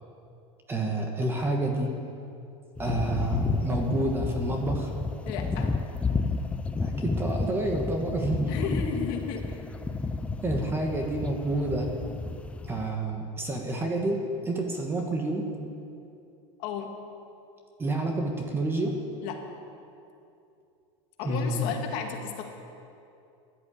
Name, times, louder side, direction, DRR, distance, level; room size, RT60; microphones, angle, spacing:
voice 1, 0.7-2.0 2.8-4.9 6.8-8.5 10.4-11.9 12.7-14.2 14.4-15.5 17.8-19.0 21.2-21.8, right 2 dB, 15° right, 2 dB, 1.5 m, -29 dB
sound 1, 2.8-12.9, left 3 dB, 10° left, 0.4 m, -31 dB
voice 2, 5.3-5.7 8.5-9.6 16.6-16.9 19.2-19.4 21.2-22.4, left 7 dB, 50° left, 2 dB, 2.3 m, -33 dB
15.0 x 11.0 x 8.4 m, 2.6 s
supercardioid pair, 155°, 16 cm